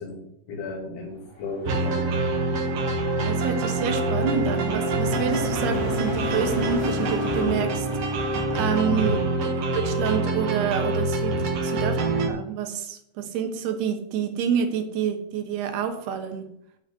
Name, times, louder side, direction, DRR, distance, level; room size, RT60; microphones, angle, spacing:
voice 1, 0.0-2.1 5.1-5.2 8.8-9.1, left 3 dB, 75° left, -1 dB, 4.3 m, -33 dB
sound 1, 1.3-8.7, equal, 15° right, 1.0 m, -35 dB
sound 2, 1.6-12.3, right 2 dB, 60° right, 1.7 m, -26 dB
voice 2, 3.2-12.0 12.3-16.5, right 7 dB, 85° right, 5 dB, 3.2 m, -28 dB
9.8 x 5.0 x 7.7 m, 0.74 s
omnidirectional pair, 4.6 m